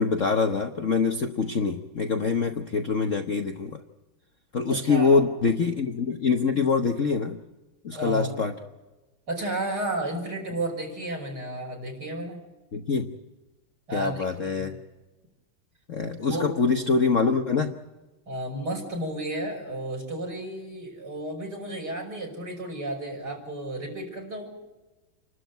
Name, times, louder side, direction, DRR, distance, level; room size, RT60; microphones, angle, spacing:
voice 1, 0.0-3.8 4.5-7.4 7.8-8.5 12.7-13.1 13.9-14.7 15.9-17.7, left 5 dB, 45° left, 4 dB, 1.2 m, -24 dB
voice 2, 4.7-5.2 7.9-8.3 9.3-12.4 13.9-14.7 16.2-16.4 18.3-24.5, right 1 dB, 45° right, 0 dB, 6.6 m, -32 dB
28.5 x 12.5 x 9.3 m, 1.1 s
omnidirectional pair, 2.4 m